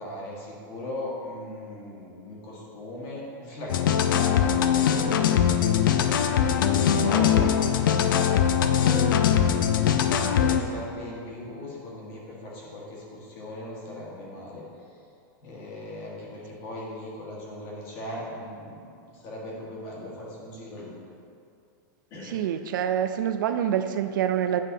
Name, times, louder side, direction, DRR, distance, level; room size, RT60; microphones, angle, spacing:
voice 1, 0.0-15.0 15.4-20.9 22.1-22.4, left 1 dB, 35° left, -4 dB, 1.5 m, -39 dB
sound 1, 3.7-10.6, left 8 dB, 85° left, 0.5 m, -21 dB
voice 2, 22.2-24.6, right 9 dB, 70° right, 9 dB, 0.4 m, -26 dB
9.2 x 5.4 x 2.7 m, 2.4 s
supercardioid pair, 170°, 11 cm